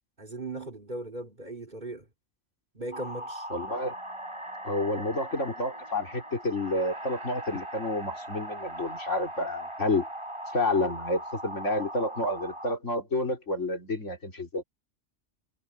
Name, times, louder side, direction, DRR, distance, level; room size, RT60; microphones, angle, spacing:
voice 1, 0.2-2.1 2.7-3.5, right 2 dB, 40° right, 3.4 m, -38 dB
sound 1, 2.9-12.8, right 1 dB, 25° right, 6.9 m, -39 dB
voice 2, 3.5-3.9 4.6-10.1 10.5-14.6, left 2 dB, 85° left, 4.1 m, -29 dB
omnidirectional pair, 1.2 m